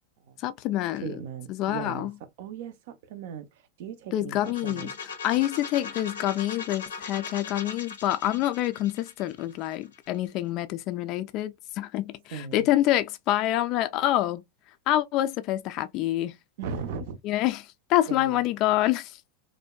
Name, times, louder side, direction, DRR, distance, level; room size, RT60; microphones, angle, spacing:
voice 1, 0.4-1.1 1.5-2.1 4.1-14.4 14.9-16.3 17.2-19.1, left 14 dB, 50° left, 0.3 m, -27 dB
voice 2, 0.9-4.9 12.3-12.7 16.6-17.2 18.1-18.4, right 6 dB, 70° right, 0.5 m, -38 dB
sound 1, 4.4-10.2, left 5 dB, 90° left, 0.7 m, -39 dB
2.6 x 2.1 x 2.2 m
hypercardioid pair, 105°, 0 cm